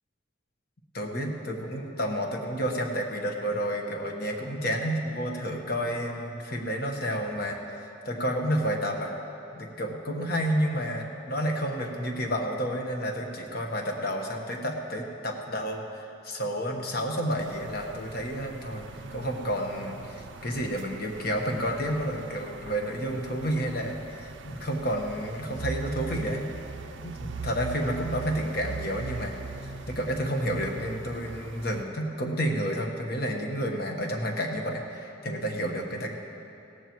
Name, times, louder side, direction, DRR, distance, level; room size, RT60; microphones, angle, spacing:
voice 1, 0.9-9.1 9.5-18.9 19.1-26.4 27.0-29.3 29.6-36.1, equal, 50° left, 2 dB, 1.3 m, -30 dB
sound 1, 17.4-31.8, right 4 dB, 70° right, 0.5 m, -41 dB
17.5 x 14.5 x 3.1 m, 2.9 s
head